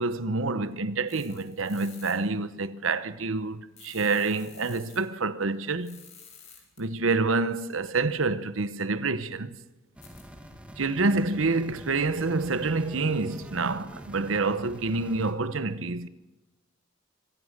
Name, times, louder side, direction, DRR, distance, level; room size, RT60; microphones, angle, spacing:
voice 1, 0.0-6.0 6.8-9.6 10.8-16.1, right 3 dB, 75° right, 1.0 m, -27 dB
sound 1, 1.1-2.1 3.8-5.0 5.8-6.8 10.0-10.2, left 7 dB, 35° left, 5.2 m, -50 dB
sound 2, 9.9-15.3, equal, 5° right, 1.7 m, -45 dB
24.5 x 16.0 x 6.7 m
head